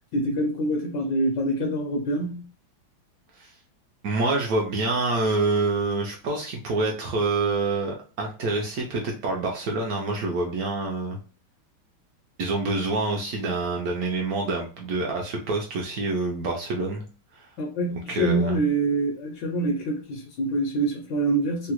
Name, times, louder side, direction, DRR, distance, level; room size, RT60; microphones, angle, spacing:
voice 1, 0.1-2.4 17.6-21.7, right 2 dB, 70° left, 1.1 m, -25 dB
voice 2, 4.0-11.2 12.4-17.0 17.3-17.5 18.1-18.5, right 3 dB, 75° right, 0.8 m, -26 dB
3.7 x 2.0 x 2.9 m
omnidirectional pair, 2.2 m